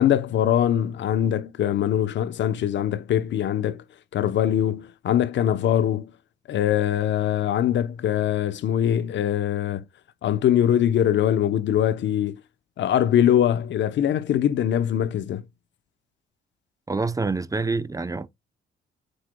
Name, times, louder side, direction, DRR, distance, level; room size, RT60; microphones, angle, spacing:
voice 1, 0.0-3.8 4.1-6.1 6.5-9.8 10.2-12.4 12.8-15.4, left 10 dB, 65° left, 0.8 m, -22 dB
voice 2, 16.9-18.3, right 3 dB, 15° right, 0.6 m, -26 dB
7.9 x 6.0 x 2.2 m
cardioid pair, 90°, 20 cm